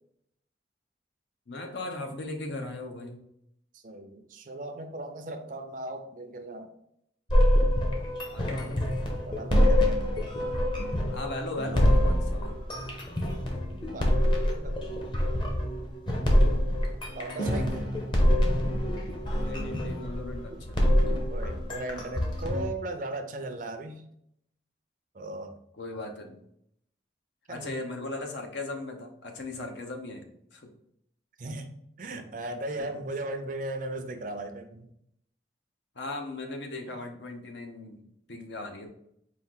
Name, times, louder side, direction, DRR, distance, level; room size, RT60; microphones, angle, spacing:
voice 1, 1.5-3.2 8.3-8.9 11.1-12.6 19.4-20.8 21.1-21.2 25.8-26.4 27.5-30.2 30.5-30.7 32.1-32.3 32.8-32.9 36.0-38.9, left 2 dB, 75° left, 3 dB, 0.8 m, -38 dB
voice 2, 3.7-6.7 9.2-10.0 13.7-15.0 17.1-17.9 21.3-24.0 25.1-25.5 27.5-27.8 31.4-31.7 32.0-34.9 36.9-37.0, right 2 dB, 45° right, 7 dB, 0.5 m, -37 dB
sound 1, 7.3-22.7, equal, 25° left, 0.7 m, -25 dB
4.4 x 2.4 x 3.6 m, 0.73 s
head